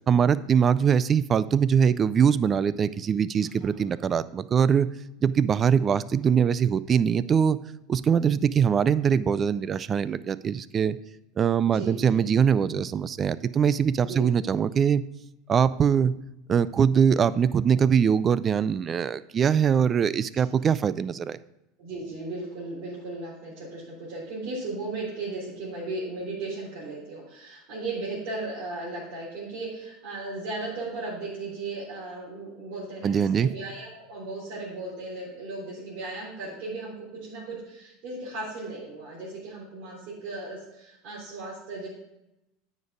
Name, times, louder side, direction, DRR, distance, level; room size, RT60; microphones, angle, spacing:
voice 1, 0.1-4.9 5.2-7.6 7.9-11.0 11.4-15.0 15.5-16.1 16.5-21.4 33.0-33.5, right 7 dB, 35° right, 17 dB, 0.4 m, -22 dB
voice 2, 3.6-4.0 11.7-12.3 14.0-14.3 21.8-36.9 37.2-41.9, right 2 dB, 60° right, -8 dB, 3.7 m, -36 dB
9.4 x 5.2 x 4.9 m, 0.90 s
hypercardioid pair, 95°, 0 cm